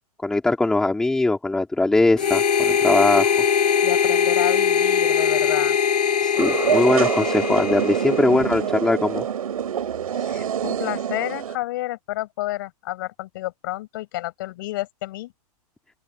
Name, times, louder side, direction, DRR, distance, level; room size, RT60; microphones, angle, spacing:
voice 1, 0.2-3.3 6.2-9.3, left 2 dB, 5° left, 3.0 m, -21 dB
Harmonica, 2.2-8.5, left 7 dB, 90° left, 7.4 m, -21 dB
voice 2, 3.8-5.8 8.3-8.4 10.1-15.3, left 17 dB, 35° left, 7.1 m, -30 dB
sound 1, 6.4-11.6, right 9 dB, 65° right, 5.3 m, -25 dB
open air
hypercardioid pair, 175°, 20 cm